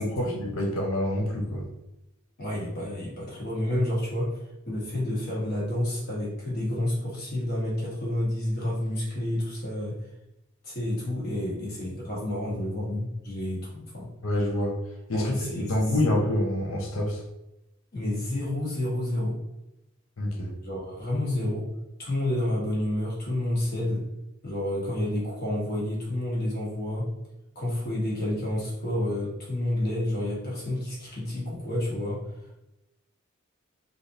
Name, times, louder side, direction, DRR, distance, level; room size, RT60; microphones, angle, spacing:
voice 1, 0.0-1.6 14.2-14.8 15.1-17.2 20.2-20.5, left 1 dB, 65° left, 0 dB, 0.6 m, -27 dB
voice 2, 2.4-4.3 4.6-10.0 10.6-14.1 15.1-15.7 17.9-19.4 20.6-21.7 22.0-24.0 24.4-27.1 27.5-32.2, left 1 dB, 45° left, -5 dB, 1.2 m, -29 dB
3.3 x 2.6 x 2.6 m, 0.91 s
head